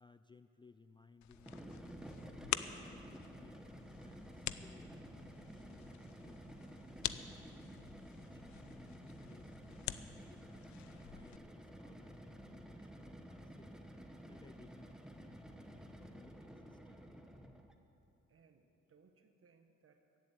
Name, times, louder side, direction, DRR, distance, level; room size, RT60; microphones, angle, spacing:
voice 1, 0.0-2.1 2.5-3.6 4.0-7.7 8.1-10.7 11.1-13.8 14.2-17.0, left 4 dB, 15° left, 10 dB, 0.3 m, -62 dB
sound 1, 1.2-11.4, left 13 dB, 70° left, 0.6 m, -47 dB
sound 2, 1.3-17.8, right 1 dB, ahead, 1.0 m, -52 dB
voice 2, 18.3-20.2, right 5 dB, 45° right, 6 dB, 1.4 m, -68 dB
15.0 x 7.5 x 8.9 m, 2.7 s
cardioid pair, 90°, 30 cm